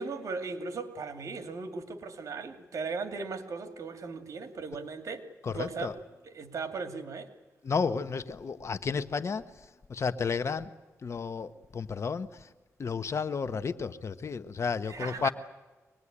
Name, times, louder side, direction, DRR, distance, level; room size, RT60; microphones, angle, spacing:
voice 1, 0.0-5.9 6.2-7.3 14.9-15.3, right 4 dB, 70° right, 7 dB, 2.5 m, -37 dB
voice 2, 5.4-5.9 7.6-9.4 9.9-10.7 11.0-12.5 12.8-15.3, left 5 dB, 55° left, 10 dB, 1.2 m, -32 dB
24.0 x 20.0 x 10.0 m, 1.2 s
cardioid pair, 80°, 6 cm